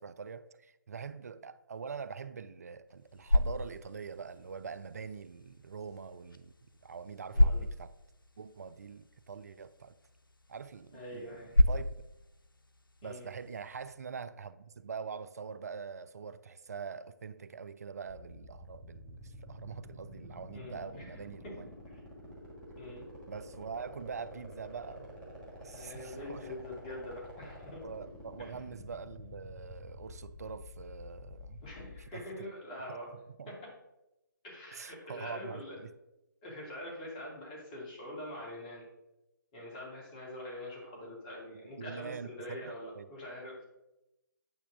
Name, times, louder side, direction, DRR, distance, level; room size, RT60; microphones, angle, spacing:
voice 1, 0.0-6.5 6.8-7.9 8.4-9.9 10.5-12.0 13.0-21.7 22.2-22.4 23.3-26.6 27.8-31.6 32.0-32.5 33.1-33.6 34.7-35.9 41.8-43.1, right 6 dB, 50° right, 0.4 m, -44 dB
sound 1, 2.9-14.0, left 1 dB, 80° left, 0.7 m, -33 dB
voice 2, 7.3-7.7 10.9-11.5 13.0-13.2 20.5-21.2 21.4-21.5 21.9-22.0 22.8-23.1 25.7-27.8 28.4-28.5 31.6-33.1 33.5-33.7 34.4-35.8 36.4-38.9 39.5-43.7, left 1 dB, 25° left, 2.4 m, -44 dB
sound 2, 18.1-32.1, left 1 dB, 10° left, 1.6 m, -49 dB
8.9 x 5.8 x 3.6 m
figure-of-eight pair, 145°, 11 cm